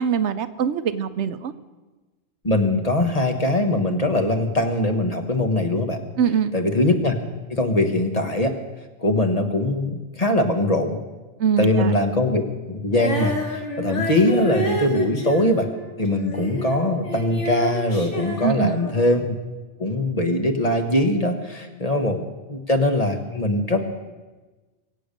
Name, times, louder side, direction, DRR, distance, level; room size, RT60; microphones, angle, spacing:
voice 1, 0.0-1.5 6.2-6.5 11.4-11.9 18.4-18.8, right 7 dB, 75° right, 12 dB, 1.0 m, -23 dB
voice 2, 2.4-6.0 6.5-7.2 7.5-8.5 9.0-11.0 11.6-15.7 16.0-19.4 19.8-23.8, left 1 dB, 35° left, 5 dB, 1.4 m, -22 dB
Female singing, 12.9-16.8 17.0-19.2, left 1 dB, 80° left, 2.5 m, -29 dB
22.5 x 8.7 x 6.7 m, 1.2 s
omnidirectional pair, 1.2 m